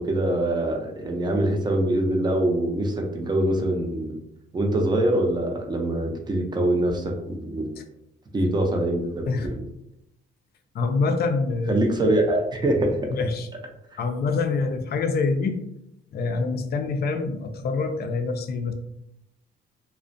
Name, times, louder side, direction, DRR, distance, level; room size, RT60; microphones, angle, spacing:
voice 1, 0.0-4.1 4.5-7.7 8.3-9.6 11.7-13.0 13.9-14.0, right 1 dB, 20° right, 2 dB, 0.5 m, -24 dB
voice 2, 10.7-11.8 13.1-13.5 14.0-15.6 16.1-18.7, left 4 dB, 55° left, 5 dB, 0.5 m, -25 dB
2.4 x 2.1 x 2.5 m, 0.82 s
cardioid pair, 90°, 20 cm